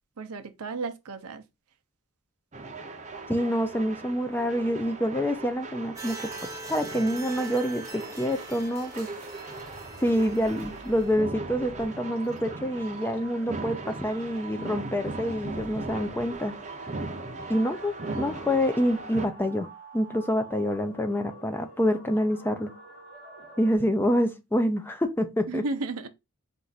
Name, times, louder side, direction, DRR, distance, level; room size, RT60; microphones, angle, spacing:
voice 1, 0.2-1.4 25.5-26.1, right 3 dB, 75° right, 0.7 m, -33 dB
sound 1, 2.5-19.3, right 3 dB, 35° right, 0.7 m, -39 dB
voice 2, 3.3-9.1 10.0-16.6 17.5-19.7 19.9-22.7 23.6-25.6, equal, 10° left, 0.5 m, -27 dB
sound 2, 6.0-11.2, right 2 dB, 15° right, 0.9 m, -42 dB
sound 3, 9.5-23.8, right 1 dB, 65° left, 2.3 m, -49 dB
4.4 x 2.5 x 4.0 m
head